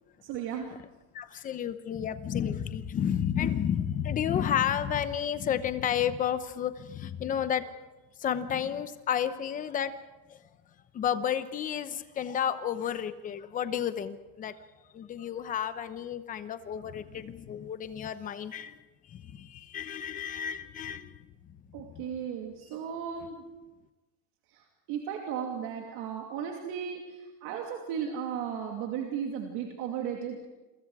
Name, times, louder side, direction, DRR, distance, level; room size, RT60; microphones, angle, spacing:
voice 1, 0.2-0.7 21.7-23.4 24.5-24.6 24.9-30.4, right 8 dB, 50° right, 1 dB, 2.7 m, -35 dB
voice 2, 1.1-7.6 8.2-9.9 10.3-10.4 10.9-14.5 14.9-18.8 19.0-21.3 21.8-22.1, left 9 dB, 20° left, 11 dB, 0.8 m, -31 dB
29.0 x 23.5 x 4.9 m, 1.1 s
cardioid pair, 175°, 42 cm